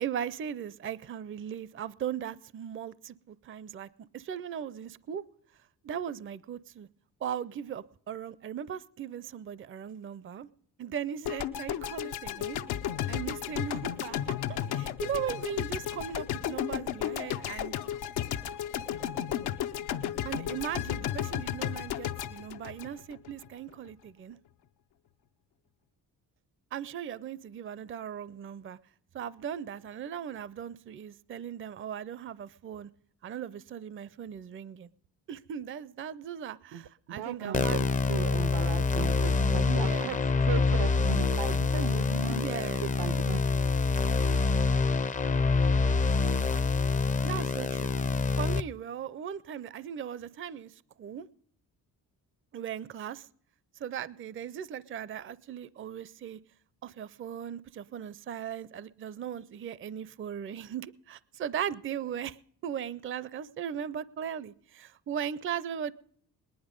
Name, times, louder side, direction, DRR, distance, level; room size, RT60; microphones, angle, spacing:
voice 1, 0.0-5.2 5.8-6.9 7.2-10.5 10.8-12.7 13.1-14.2 14.5-17.8 20.3-24.4 26.7-28.8 29.1-32.9 33.2-34.9 35.3-37.8 39.7-40.2 42.3-42.8 47.2-47.9 48.4-50.7 51.0-51.3 52.5-53.2 53.8-56.4 56.8-62.4 62.6-65.9, right 9 dB, 35° right, 0.5 m, -38 dB
sound 1, 11.2-23.5, left 11 dB, 80° left, 0.7 m, -34 dB
voice 2, 36.7-42.5 42.8-43.4, right 8 dB, 75° right, 0.7 m, -37 dB
sound 2, 37.5-48.6, left 4 dB, 20° left, 0.5 m, -26 dB
19.5 x 10.5 x 5.2 m
cardioid pair, 80°, 38 cm